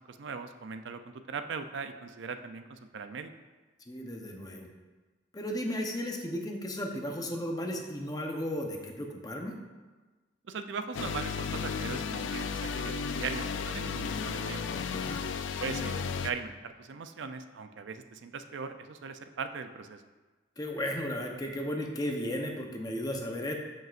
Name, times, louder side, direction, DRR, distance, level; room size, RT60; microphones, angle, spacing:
voice 1, 0.1-3.3 10.5-14.7 15.6-20.0, right 5 dB, 75° right, 9 dB, 0.4 m, -39 dB
voice 2, 3.9-4.7 5.3-9.5 14.9-15.2 20.6-23.5, equal, 20° left, 1 dB, 0.8 m, -35 dB
sound 1, 10.9-16.3, left 5 dB, 80° left, 0.4 m, -34 dB
13.0 x 5.4 x 2.5 m, 1.3 s
head